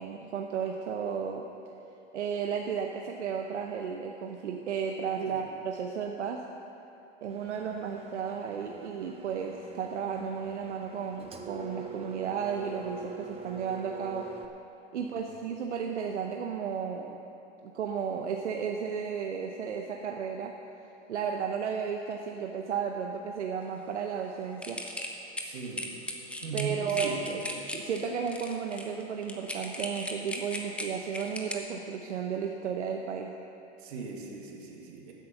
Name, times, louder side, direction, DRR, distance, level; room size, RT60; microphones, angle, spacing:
voice 1, 0.0-1.4 2.1-6.4 7.2-14.3 14.9-17.2 17.6-20.5 21.1-24.8 26.5-27.4 27.7-33.3, right 7 dB, 85° right, 2 dB, 1.0 m, -33 dB
Engine, 7.3-14.5, right 4 dB, 15° right, 0.8 m, -44 dB
voice 2, 14.9-15.3 25.4-26.0 26.4-27.2 33.8-35.1, right 5 dB, 65° right, 0 dB, 2.4 m, -39 dB
sound 1, 24.6-31.5, left 1 dB, 5° left, 0.9 m, -37 dB
15.0 x 8.4 x 5.9 m, 2.9 s
hypercardioid pair, 130°, 34 cm